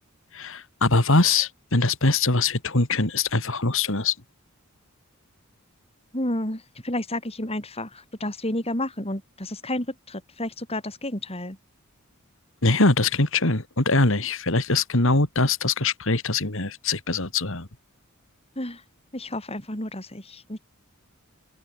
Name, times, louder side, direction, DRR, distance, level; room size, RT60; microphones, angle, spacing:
voice 1, 0.3-4.1 12.6-17.7, left 3 dB, 60° left, 2.7 m, -22 dB
voice 2, 6.1-11.6 18.6-18.8 19.1-20.6, left 1 dB, 25° left, 5.3 m, -31 dB
open air
head